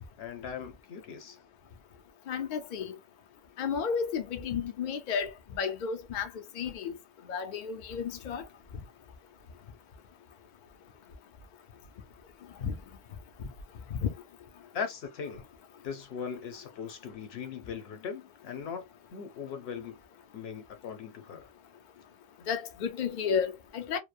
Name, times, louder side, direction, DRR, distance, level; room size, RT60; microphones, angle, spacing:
voice 1, 0.2-1.4 14.7-15.4 15.8-18.8 19.1-20.0 20.3-21.5, left 6 dB, 80° left, 0.9 m, -39 dB
voice 2, 2.3-2.9 3.6-7.0 7.3-8.4 12.6-12.8 13.9-14.1 22.5-24.0, left 6 dB, 55° left, 0.6 m, -32 dB
3.0 x 2.0 x 2.3 m
omnidirectional pair, 1.0 m